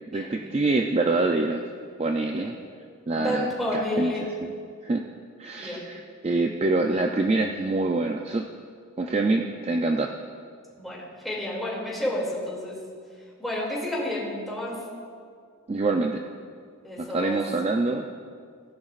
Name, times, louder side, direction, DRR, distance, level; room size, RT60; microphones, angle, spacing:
voice 1, 0.1-1.6 2.0-2.6 3.1-4.1 4.4-4.5 4.8-5.0 5.4-8.5 9.0-10.1 15.7-16.2 17.0-18.1, right 2 dB, 30° right, 4 dB, 0.3 m, -25 dB
voice 2, 3.1-4.2 5.5-5.8 10.8-12.8 13.4-14.8 16.8-17.4, left 1 dB, ahead, -6 dB, 2.4 m, -30 dB
17.5 x 10.5 x 2.4 m, 2.2 s
head